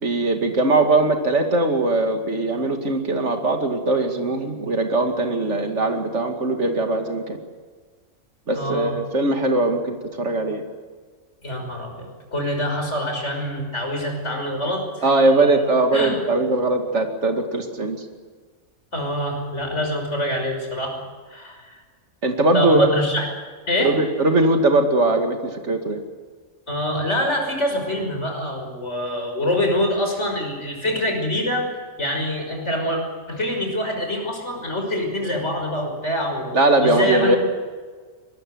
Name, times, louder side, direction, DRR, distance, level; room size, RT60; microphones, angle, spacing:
voice 1, 0.0-7.4 8.5-10.6 15.0-18.0 22.2-22.9 23.8-26.0 36.5-37.4, right 2 dB, 70° right, 4 dB, 2.7 m, -20 dB
voice 2, 8.5-8.9 11.4-15.1 15.9-16.2 18.9-21.0 21.3-21.8 22.5-23.3 23.7-24.0 26.7-31.7 32.0-33.0 33.3-36.5 36.8-37.4, left 1 dB, 70° left, 3 dB, 6.2 m, -25 dB
24.5 x 20.5 x 7.9 m, 1.5 s
omnidirectional pair, 1.3 m